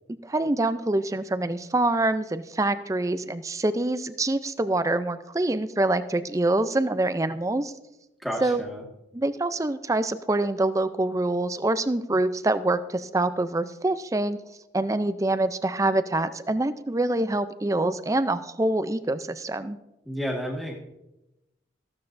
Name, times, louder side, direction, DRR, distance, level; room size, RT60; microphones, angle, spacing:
voice 1, 0.2-7.7 8.4-8.6 9.1-14.4 14.7-19.8, right 2 dB, 15° right, 12 dB, 0.5 m, -25 dB
voice 2, 8.2-8.8 20.1-20.7, equal, ahead, -3 dB, 1.8 m, -31 dB
15.0 x 12.5 x 2.6 m, 0.94 s
head